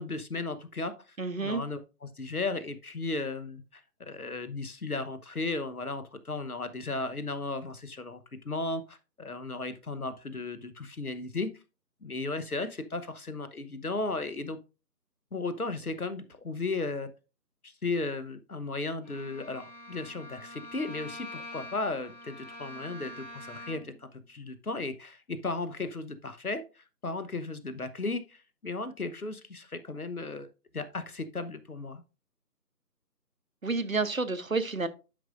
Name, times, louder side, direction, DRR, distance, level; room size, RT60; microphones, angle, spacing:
voice 1, 0.0-11.5 12.0-14.6 15.3-17.1 17.6-30.5 30.7-32.0, left 3 dB, 65° left, 1.1 m, -35 dB
voice 2, 1.2-1.6 33.6-34.9, right 3 dB, 55° right, 0.9 m, -29 dB
Bowed string instrument, 19.0-24.0, left 1 dB, 25° left, 1.9 m, -45 dB
12.0 x 5.3 x 2.5 m
figure-of-eight pair, 165°, 49 cm